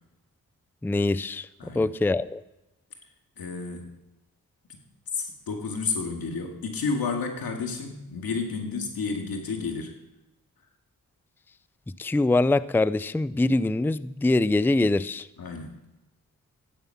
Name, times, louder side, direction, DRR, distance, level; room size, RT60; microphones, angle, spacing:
voice 1, 0.8-1.5 1.7-2.4 12.0-15.3, left 2 dB, 5° left, 17 dB, 0.4 m, -23 dB
voice 2, 1.6-1.9 3.4-4.0 5.1-9.9 15.4-15.7, left 4 dB, 90° left, 3 dB, 2.1 m, -31 dB
14.5 x 10.5 x 5.8 m, 0.96 s
cardioid pair, 60°, 35 cm